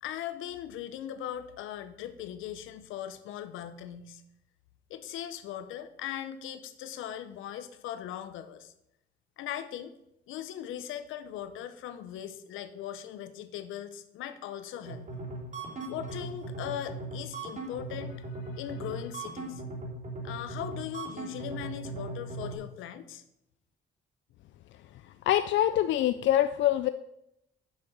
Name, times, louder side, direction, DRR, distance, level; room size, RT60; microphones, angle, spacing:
voice 1, 0.0-4.2 4.9-8.7 9.4-9.9 10.3-15.1 15.9-19.6 20.2-23.2, left 10 dB, 90° left, 11 dB, 0.8 m, -39 dB
sound 1, 14.9-22.6, right 2 dB, 40° right, 3.6 m, -39 dB
voice 2, 25.3-26.9, left 12 dB, 70° left, 11 dB, 0.4 m, -24 dB
7.4 x 6.3 x 6.0 m, 0.82 s
cardioid pair, 90°, 20 cm